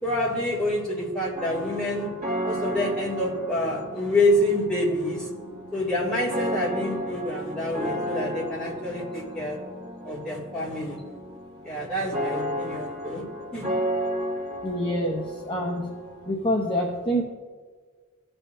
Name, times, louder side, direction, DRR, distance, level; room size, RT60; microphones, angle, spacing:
voice 1, 0.0-2.1 2.4-5.3 5.7-9.6 10.0-11.0 11.6-13.2 13.5-13.6, left 1 dB, 5° left, -8 dB, 2.4 m, -27 dB
sound 1, 1.3-16.3, equal, 35° right, 1.9 m, -33 dB
voice 2, 14.6-15.9 16.3-17.2, equal, 25° left, -1 dB, 0.8 m, -26 dB
16.0 x 5.6 x 2.7 m, 1.5 s
head